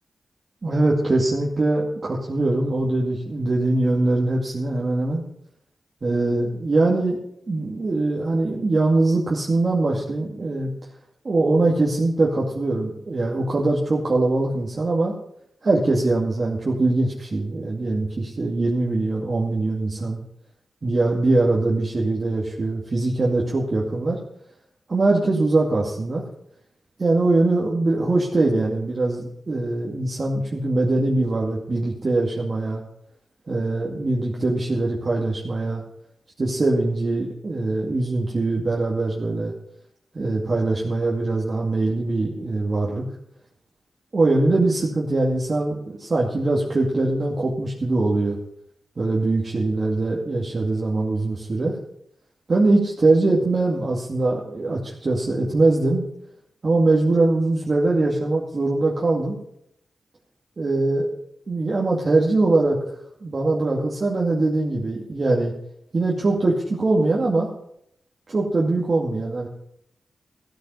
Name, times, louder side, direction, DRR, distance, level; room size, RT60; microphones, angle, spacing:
voice 1, 0.6-5.2 6.0-7.2 7.5-10.7 11.2-15.1 15.6-20.2 20.8-24.2 24.9-26.2 27.0-32.8 33.5-35.8 36.4-39.5 40.1-43.0 44.1-48.4 49.0-51.8 52.5-56.0 56.6-59.4 60.6-61.1 61.5-62.8 63.2-65.5 65.9-67.5 68.3-69.5, right 2 dB, 50° right, -3 dB, 2.3 m, -22 dB
14.5 x 9.2 x 5.5 m, 0.74 s
cardioid pair, 55°, 0 cm